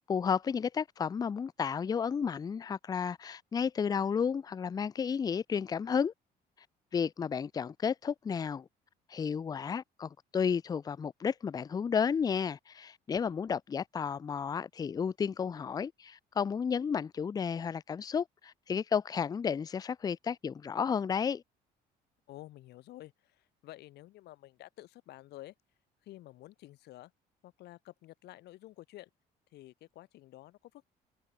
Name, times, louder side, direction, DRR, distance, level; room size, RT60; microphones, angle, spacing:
voice 1, 0.1-6.1 6.9-8.7 9.1-21.4, left 6 dB, 20° left, 0.4 m, -32 dB
voice 2, 22.3-25.5 26.0-27.1 27.4-29.1 29.5-30.8, left 16 dB, 75° left, 5.0 m, -51 dB
cardioid pair, 110°, 17 cm